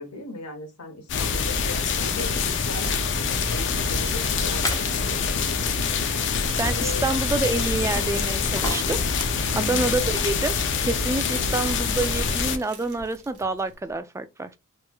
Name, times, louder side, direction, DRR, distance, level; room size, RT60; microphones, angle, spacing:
voice 1, 0.0-5.9 6.7-7.1 9.5-9.9, left 2 dB, 85° left, 1.1 m, -38 dB
sound 1, 1.1-12.6, left 5 dB, 55° left, 0.5 m, -25 dB
Crumpling crinkling, 1.7-13.7, right 4 dB, 85° right, 1.0 m, -44 dB
sound 2, 2.5-3.2 3.5-3.7 4.1-4.2 4.6-5.1 5.9-14.0, left 1 dB, 15° left, 0.7 m, -37 dB
voice 2, 6.6-9.0 9.6-10.6 10.8-14.5, right 3 dB, 15° right, 0.3 m, -27 dB
3.4 x 3.0 x 2.3 m
head